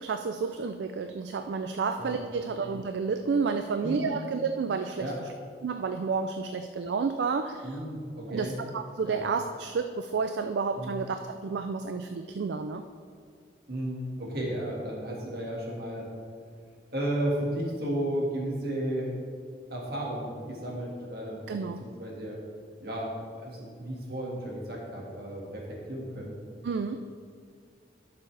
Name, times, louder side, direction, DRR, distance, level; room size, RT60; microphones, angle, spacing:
voice 1, 0.0-5.3 5.6-7.8 8.3-12.8 21.5-21.8 26.6-27.0, right 5 dB, 75° right, 8 dB, 0.4 m, -31 dB
voice 2, 7.6-8.5 9.0-9.2 10.8-10.9 13.7-16.1 16.9-19.1 19.7-22.4 22.8-25.6 25.9-26.4, right 1 dB, 55° right, -2 dB, 1.8 m, -33 dB
11.5 x 6.8 x 3.3 m, 2.1 s
head